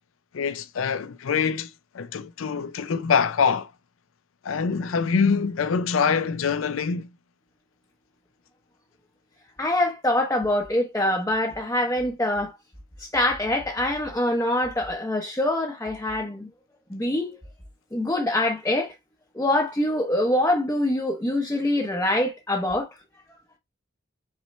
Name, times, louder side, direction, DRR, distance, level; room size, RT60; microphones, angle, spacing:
voice 1, 0.3-3.7 4.4-7.1, left 6 dB, 90° left, 0.5 m, -24 dB
voice 2, 9.6-12.5 13.0-16.5 16.9-17.4 17.9-18.9 19.3-22.9, left 1 dB, 15° left, 0.6 m, -24 dB
4.1 x 3.0 x 3.0 m
head